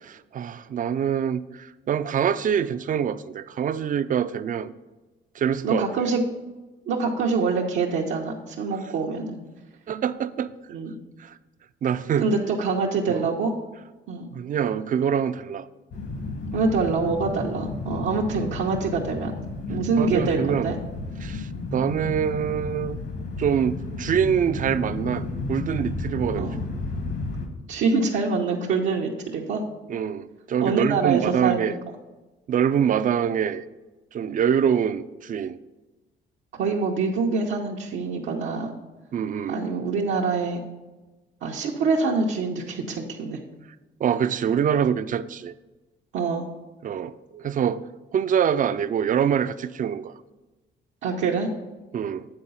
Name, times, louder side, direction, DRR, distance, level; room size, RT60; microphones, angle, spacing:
voice 1, 0.0-4.7 5.4-5.9 9.9-10.5 11.2-11.4 11.8-12.3 13.1-13.2 14.3-15.7 20.0-20.7 21.2-23.0 23.4-26.5 29.9-31.8 32.5-33.6 34.1-35.6 39.1-39.6 44.0-45.5 46.8-47.1 47.4-47.8 48.1-50.2 51.9-52.3, right 8 dB, 45° right, 14 dB, 0.4 m, -25 dB
voice 2, 5.6-6.2 6.9-9.4 10.7-11.0 12.2-13.5 14.1-14.3 16.5-19.3 19.7-20.8 26.4-26.6 27.7-29.6 30.6-31.8 36.5-38.7 39.5-40.6 41.4-43.4 46.1-46.5 47.3-47.4 51.0-51.5, right 4 dB, 85° right, -2 dB, 0.8 m, -25 dB
sound 1, 15.9-27.5, left 3 dB, 60° left, 1.3 m, -32 dB
8.9 x 3.9 x 5.5 m, 1.2 s
cardioid pair, 90°, 20 cm